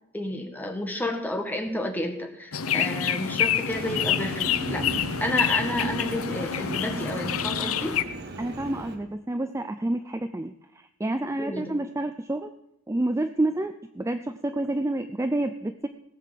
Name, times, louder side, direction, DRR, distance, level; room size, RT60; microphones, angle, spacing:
voice 1, 0.1-4.9 5.2-8.0 11.4-11.7, left 1 dB, 10° left, 3 dB, 1.6 m, -31 dB
sound 1, 2.5-8.0, left 9 dB, 80° left, 0.7 m, -27 dB
Train, 3.7-9.0, right 2 dB, 50° right, 1.4 m, -36 dB
voice 2, 8.4-12.5 12.9-15.9, right 1 dB, 15° right, 9 dB, 0.4 m, -29 dB
17.5 x 6.6 x 7.5 m, 0.82 s
head